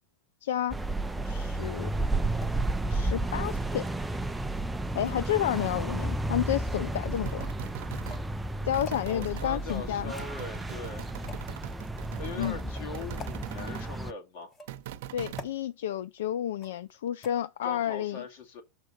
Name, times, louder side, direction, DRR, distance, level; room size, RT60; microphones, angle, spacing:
voice 1, 0.4-0.8 1.2-1.9 2.9-3.9 4.9-7.5 8.6-10.1 12.4-12.6 15.1-18.2, left 11 dB, 85° left, 0.3 m, -31 dB
sound 1, 0.7-14.1, right 2 dB, 5° right, 0.4 m, -32 dB
sound 2, 2.3-2.5 3.4-4.0 5.0-5.9 6.9-7.1 7.9-8.3 8.8-9.0 10.0-10.6 11.3-11.5 12.3-12.6 13.2-13.4 14.4-14.9 15.4-15.6 16.6-16.9 17.2-17.3, left 4 dB, 25° left, 1.1 m, -46 dB
sound 3, 7.1-8.3 8.7-9.5 10.2-13.9 14.7-15.5, right 12 dB, 70° right, 0.8 m, -42 dB
voice 2, 9.1-11.1 12.2-14.5 17.6-18.6, left 4 dB, 65° left, 2.3 m, -41 dB
6.4 x 4.7 x 6.4 m
supercardioid pair, 135°, 0 cm